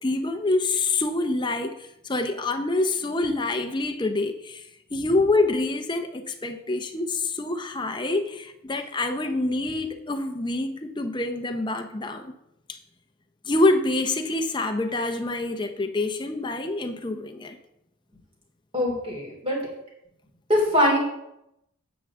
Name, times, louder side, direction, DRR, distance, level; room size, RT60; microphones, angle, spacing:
voice 1, 0.0-12.3 12.7-12.8 13.4-17.6, left 2 dB, 20° left, 0.7 m, -26 dB
voice 2, 18.7-19.6 20.5-21.0, equal, 25° right, 3.2 m, -22 dB
9.6 x 8.0 x 3.7 m
head